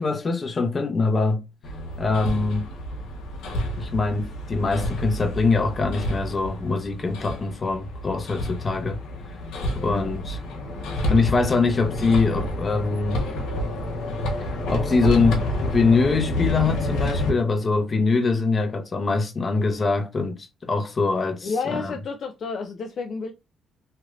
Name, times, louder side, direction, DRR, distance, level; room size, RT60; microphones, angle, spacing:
voice 1, 0.0-1.4 2.0-2.7 3.8-9.0 9.8-10.4 11.1-13.2 14.4-21.9, left 4 dB, 35° left, 0.8 m, -23 dB
Hammer, 1.6-17.3, left 1 dB, 85° left, 0.9 m, -29 dB
voice 2, 9.8-10.1 21.4-23.3, left 4 dB, 55° left, 0.4 m, -30 dB
3.1 x 2.8 x 2.4 m
cardioid pair, 90°, 0 cm